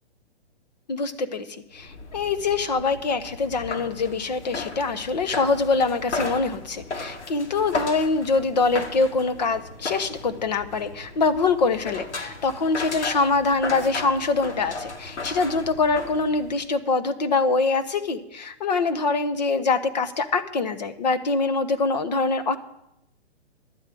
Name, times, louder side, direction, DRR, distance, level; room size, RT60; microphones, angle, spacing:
voice 1, 0.9-22.6, left 4 dB, 40° left, 10 dB, 1.0 m, -24 dB
sound 1, 1.7-16.6, left 3 dB, 80° left, 2.5 m, -35 dB
11.5 x 7.3 x 9.0 m, 0.84 s
hypercardioid pair, 175°, 34 cm